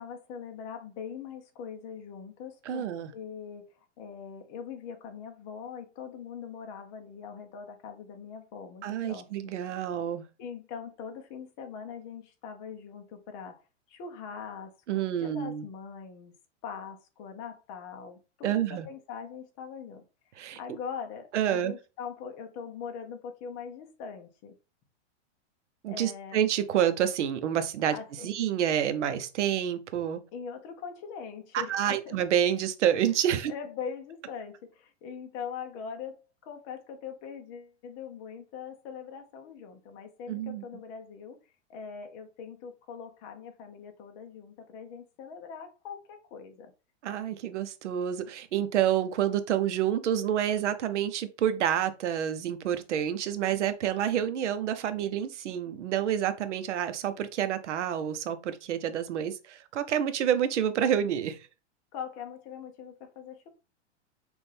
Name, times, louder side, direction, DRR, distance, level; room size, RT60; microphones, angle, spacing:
voice 1, 0.0-3.7 4.0-9.5 10.4-13.6 13.9-16.3 16.6-20.0 20.6-24.5 25.9-26.4 27.9-28.3 30.3-32.2 33.5-41.4 41.7-46.7 61.9-63.5, left 6 dB, 30° left, 0.8 m, -42 dB
voice 2, 2.7-3.1 8.8-10.2 14.9-15.7 18.4-18.9 20.4-20.6 21.3-21.7 25.8-28.0 28.2-30.2 31.5-33.5 40.3-40.6 47.0-61.4, right 10 dB, 90° right, 0.9 m, -28 dB
6.2 x 2.5 x 3.4 m
supercardioid pair, 165°, 34 cm